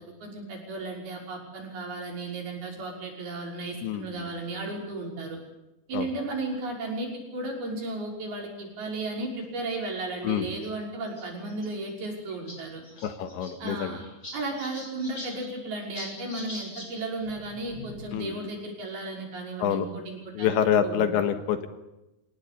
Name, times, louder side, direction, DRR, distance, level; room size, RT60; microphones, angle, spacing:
voice 1, 0.0-5.4 5.9-12.8 13.6-14.0 14.3-21.0, right 2 dB, 55° right, 0 dB, 7.6 m, -34 dB
sound 1, 7.8-8.2 9.1-9.2 9.4-9.5 10.6-10.7 11.1-11.7 12.0-12.1 12.3-12.6 12.8-16.9 17.2-18.3, left 1 dB, 15° left, 6.5 m, -43 dB
voice 2, 13.0-14.0 18.1-18.3 19.6-19.9 20.4-21.7, left 9 dB, 75° left, 9 dB, 3.6 m, -26 dB
28.0 x 18.0 x 8.6 m, 0.96 s
omnidirectional pair, 5.4 m